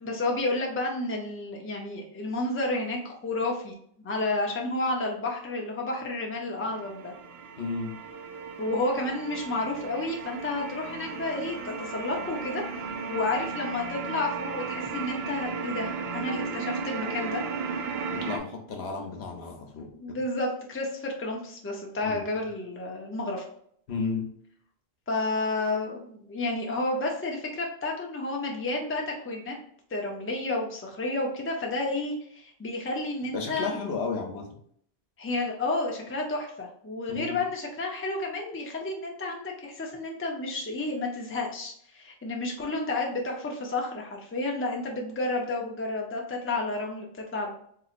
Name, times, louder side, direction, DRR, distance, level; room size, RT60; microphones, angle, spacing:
voice 1, 0.0-3.7 4.0-7.1 8.6-17.4 19.9-23.4 25.1-29.6 29.9-33.8 35.2-47.1 47.3-47.5, left 2 dB, 15° left, 0 dB, 0.5 m, -31 dB
sound 1, 6.6-18.4, right 5 dB, 75° right, 0.8 m, -35 dB
voice 2, 7.6-7.9 18.1-19.9 22.0-22.4 23.9-24.3 33.3-34.6 37.1-37.4, left 4 dB, 75° left, 2 dB, 1.0 m, -33 dB
4.0 x 2.8 x 2.4 m, 0.65 s
omnidirectional pair, 1.1 m